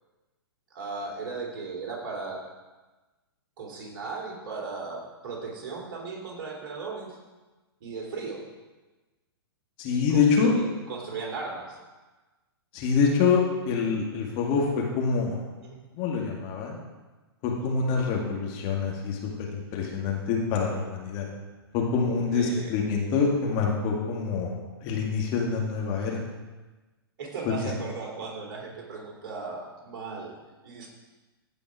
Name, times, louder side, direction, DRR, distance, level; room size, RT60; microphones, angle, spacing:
voice 1, 0.7-2.4 3.6-7.1 7.8-8.4 9.9-11.8 15.6-15.8 17.6-17.8 22.3-22.7 26.0-26.1 27.2-30.3 30.6-30.9, right 4 dB, 55° right, -1 dB, 3.1 m, -37 dB
voice 2, 9.8-10.5 12.7-15.4 15.9-16.8 17.4-19.2 19.5-21.2 21.7-24.5 24.8-26.2, left 5 dB, 35° left, -1 dB, 2.1 m, -26 dB
15.5 x 5.2 x 4.8 m, 1.2 s
figure-of-eight pair, 115°, 13 cm